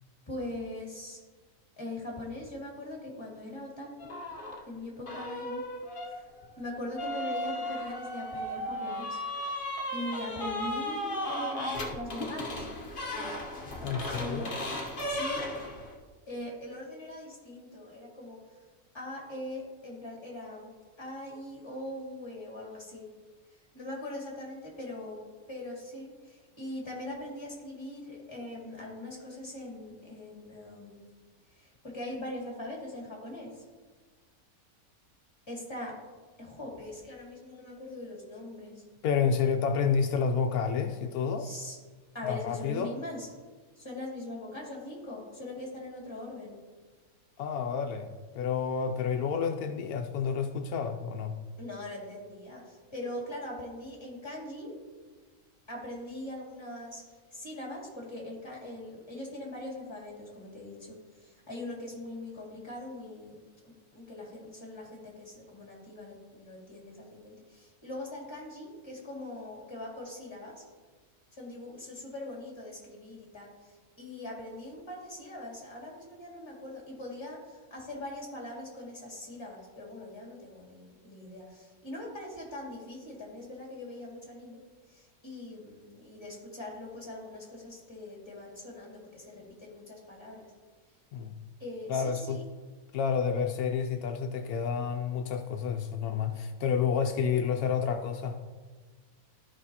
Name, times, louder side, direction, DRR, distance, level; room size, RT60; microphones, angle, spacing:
voice 1, 0.3-1.2 1.8-4.1 4.7-5.6 6.0-6.3 6.6-9.2 9.9-12.7 14.2-14.5 15.1-15.6 16.3-18.4 18.9-20.7 21.0-23.1 23.7-25.2 25.5-31.0 31.5-33.6 35.5-36.0 36.4-38.8 41.4-41.8 42.1-43.3 43.8-46.6 51.6-54.7 55.7-57.0 57.3-70.5 71.3-84.6 84.9-90.5 91.6-92.4, left 1 dB, 20° left, -3 dB, 2.1 m, -41 dB
sound 1, 4.0-4.6 5.1-15.9, left 1 dB, 40° left, 1.1 m, -35 dB
voice 2, 13.8-14.5 39.0-41.5 42.3-42.9 47.4-51.4 91.1-91.4 91.9-92.4 92.9-98.4, left 6 dB, 80° left, 6 dB, 1.1 m, -29 dB
13.5 x 5.4 x 2.8 m, 1.4 s
omnidirectional pair, 1.6 m